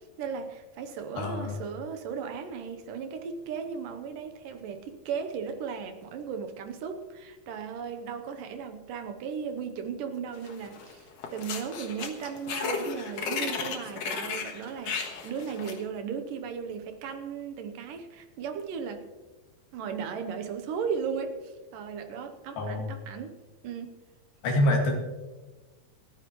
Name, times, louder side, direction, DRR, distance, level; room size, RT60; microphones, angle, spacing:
voice 1, 0.2-19.1 19.7-24.0, right 6 dB, 70° right, 7 dB, 2.4 m, -36 dB
voice 2, 1.2-1.6 22.6-22.9 24.4-25.0, left 1 dB, 85° left, 1 dB, 4.0 m, -26 dB
sound 1, 10.4-10.9 11.2-15.8, left 5 dB, 55° left, 2.1 m, -34 dB
27.5 x 9.6 x 3.1 m, 1.2 s
omnidirectional pair, 4.2 m